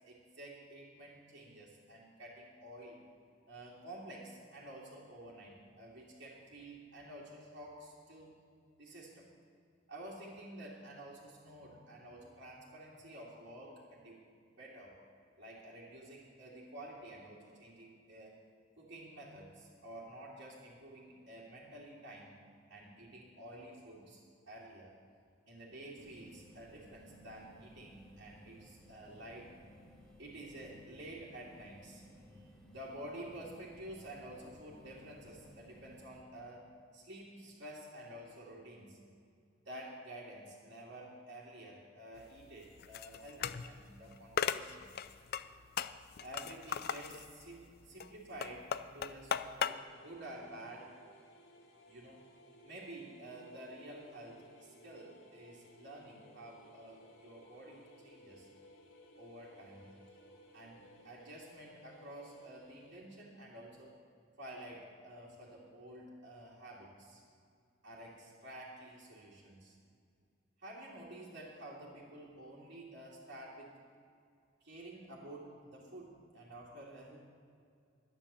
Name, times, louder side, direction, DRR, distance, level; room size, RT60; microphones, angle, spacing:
voice 1, 0.0-3.0 3.5-8.3 8.8-9.3 9.9-14.2 14.6-15.0 15.4-18.3 18.8-22.4 22.7-24.2 24.5-24.9 25.5-29.5 30.2-32.0 32.3-39.0 39.5-44.9 46.2-51.0 51.9-52.2 52.6-58.5 59.2-64.0 64.4-67.2 67.8-69.8 70.6-73.7 74.6-77.2, right 1 dB, 60° right, -8 dB, 2.5 m, -50 dB
sound 1, 25.9-36.2, equal, 5° left, 2.0 m, -59 dB
sound 2, 42.2-49.7, left 8 dB, 50° left, 0.4 m, -38 dB
sound 3, 49.9-62.9, equal, 85° left, 1.9 m, -60 dB
11.5 x 9.9 x 6.9 m, 2.3 s
head